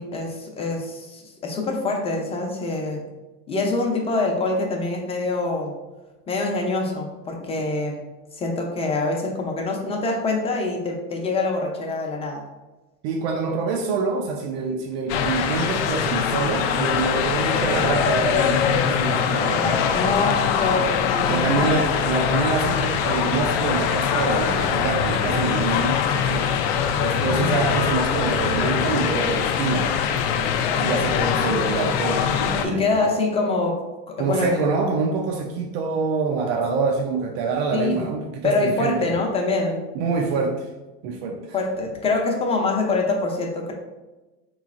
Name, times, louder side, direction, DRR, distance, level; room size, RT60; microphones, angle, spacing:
voice 1, 0.0-3.0 3.5-5.7 6.3-8.0 8.4-12.4 19.6-21.8 27.2-27.5 30.7-31.5 32.6-33.8 34.1-34.7 37.7-38.0 38.4-39.8 41.5-43.7, left 3 dB, 20° left, 1 dB, 0.6 m, -25 dB
voice 2, 13.0-20.0 21.3-26.5 27.0-29.9 30.8-33.1 34.2-39.1 39.9-40.7 41.0-41.6, right 4 dB, 70° right, 1 dB, 0.5 m, -26 dB
sound 1, 15.1-32.7, left 7 dB, 75° left, 0.5 m, -22 dB
4.0 x 3.1 x 2.4 m, 1.1 s
supercardioid pair, 135°, 31 cm